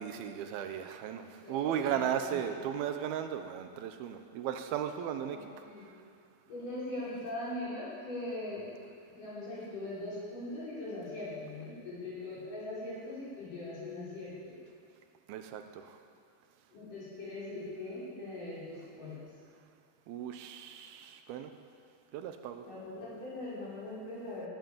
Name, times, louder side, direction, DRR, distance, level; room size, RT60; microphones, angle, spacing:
voice 1, 0.0-5.4 15.3-16.0 20.1-21.5 22.1-22.6, right 9 dB, 85° right, 7 dB, 2.7 m, -36 dB
voice 2, 1.2-2.6 5.3-5.9 6.5-8.6 9.1-14.6 16.7-19.2 22.6-24.5, left 2 dB, 60° left, -9 dB, 6.8 m, -41 dB
18.5 x 10.5 x 7.4 m, 2.3 s
omnidirectional pair, 4.3 m